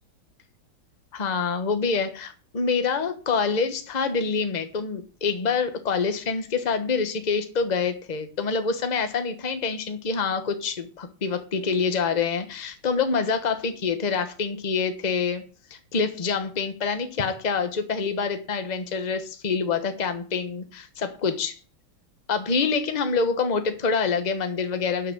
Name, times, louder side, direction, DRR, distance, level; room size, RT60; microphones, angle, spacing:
voice 1, 1.1-15.4 15.7-21.6 22.3-25.1, left 5 dB, 30° left, 8 dB, 0.9 m, -26 dB
11.0 x 5.8 x 6.6 m, 0.40 s
omnidirectional pair, 2.3 m